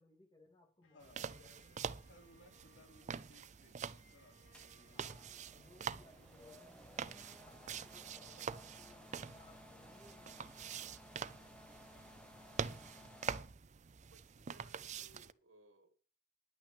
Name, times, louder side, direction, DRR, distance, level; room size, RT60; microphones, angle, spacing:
voice 1, 0.0-1.8 4.9-10.9, left 2 dB, 25° left, 1 dB, 3.0 m, -64 dB
Bowed string instrument, 0.8-8.1, left 2 dB, 90° left, 1.8 m, -71 dB
sound 1, 1.0-15.3, right 6 dB, 40° right, 0.4 m, -46 dB
voice 2, 1.9-5.1, left 1 dB, 70° left, 2 dB, 3.4 m, -65 dB
sound 2, 4.5-13.4, left 1 dB, 5° left, 1.2 m, -59 dB
voice 3, 14.1-16.0, right 2 dB, 85° right, 10 dB, 1.7 m, -66 dB
10.5 x 6.0 x 8.2 m, 0.41 s
head